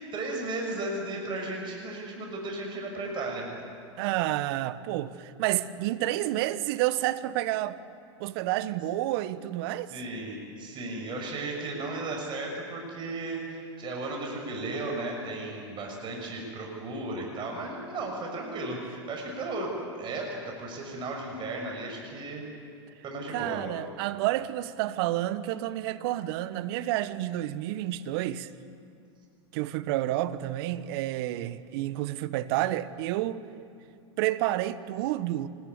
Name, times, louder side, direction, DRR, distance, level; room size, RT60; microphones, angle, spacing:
voice 1, 0.1-3.5 9.9-22.4 23.0-23.7, right 2 dB, 30° right, 6.5 m, -35 dB
voice 2, 4.0-7.8 8.2-9.9 23.3-28.5 29.5-33.4 34.2-35.5, right 15 dB, 55° right, 1.2 m, -29 dB
25.5 x 21.0 x 9.7 m
hypercardioid pair, 100°, 15 cm